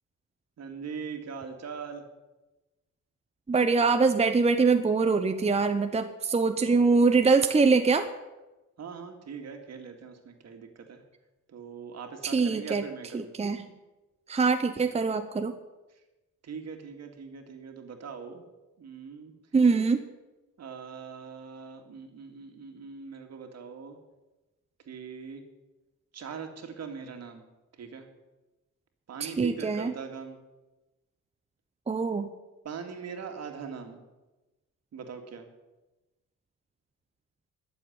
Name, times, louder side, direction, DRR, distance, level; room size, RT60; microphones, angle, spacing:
voice 1, 0.6-2.0 6.6-6.8 8.8-11.0 11.5-13.3 16.4-18.4 18.8-19.3 20.6-24.0 24.9-25.4 26.1-27.4 27.8-28.1 29.1-30.4 32.6-34.0 34.9-35.5, right 6 dB, 60° right, 5 dB, 2.2 m, -41 dB
voice 2, 3.5-8.1 12.2-12.8 13.1-13.7 14.3-15.5 19.5-20.0 29.2-29.9 31.9-32.3, right 4 dB, 20° right, 7 dB, 0.8 m, -23 dB
12.5 x 7.2 x 9.3 m, 1.1 s
cardioid pair, 90°, 30 cm